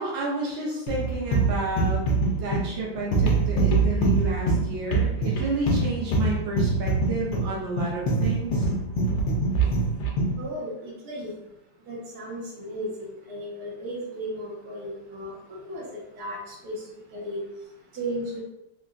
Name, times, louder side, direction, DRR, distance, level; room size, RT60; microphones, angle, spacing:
voice 1, 0.0-2.0 2.4-8.6, right 2 dB, 80° right, -4 dB, 1.4 m, -31 dB
sound 1, 0.9-10.4, right 3 dB, 80° left, 1.3 m, -24 dB
voice 2, 10.4-11.3 11.9-12.9 13.3-15.3 15.6-15.8 16.2-16.4 16.6-16.8 17.1-17.4 18.0-18.4, right 1 dB, 60° right, -5 dB, 1.3 m, -34 dB
3.7 x 2.1 x 2.4 m, 0.87 s
omnidirectional pair, 2.0 m